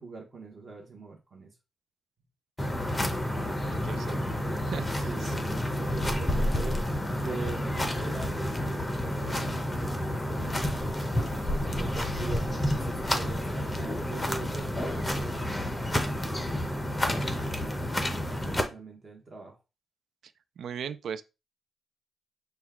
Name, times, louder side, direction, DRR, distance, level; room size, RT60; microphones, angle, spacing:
voice 1, 0.0-1.5 5.0-10.0 10.3-11.0 11.6-17.9 18.4-19.6, right 3 dB, 30° right, 1.0 m, -44 dB
sound 1, 2.6-18.6, left 1 dB, 10° left, 0.7 m, -30 dB
voice 2, 3.6-5.1 20.6-21.2, right 7 dB, 70° right, 0.3 m, -39 dB
6.1 x 2.2 x 3.5 m
wide cardioid pair, 170°, 0 cm